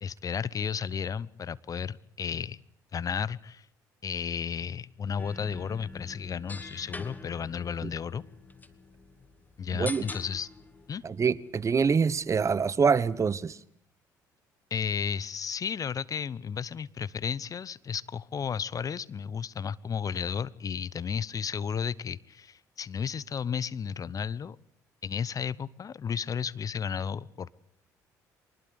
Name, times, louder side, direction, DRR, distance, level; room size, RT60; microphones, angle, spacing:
voice 1, 0.0-2.6 2.9-3.7 4.0-8.2 9.6-10.5 10.9-11.0 14.7-24.6 25.0-27.5, left 7 dB, 40° left, 0.9 m, -33 dB
sound 1, 5.2-12.4, left 3 dB, 20° left, 2.3 m, -45 dB
voice 2, 9.7-10.0 11.0-13.6, right 5 dB, 35° right, 1.1 m, -25 dB
24.5 x 20.0 x 8.2 m
hypercardioid pair, 60°, 9 cm